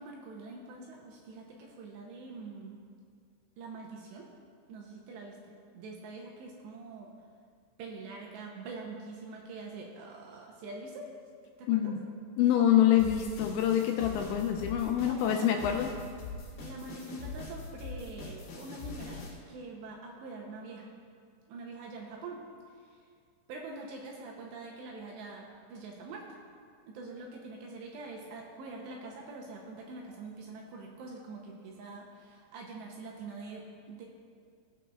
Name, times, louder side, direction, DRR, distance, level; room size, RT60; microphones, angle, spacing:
voice 1, 0.0-2.8 3.6-4.3 4.7-7.1 7.8-11.1 11.6-11.9 14.9-15.6 16.6-19.2 19.5-20.9 21.5-22.4 22.8-23.0 23.5-26.4 26.9-34.1, right 3 dB, 80° right, -1 dB, 2.7 m, -44 dB
voice 2, 11.7-12.0 12.4-15.9, left 10 dB, 85° left, 3 dB, 2.7 m, -26 dB
sound 1, 13.0-19.4, left 4 dB, 60° left, 3.0 m, -43 dB
19.0 x 7.0 x 2.4 m, 2.2 s
omnidirectional pair, 5.6 m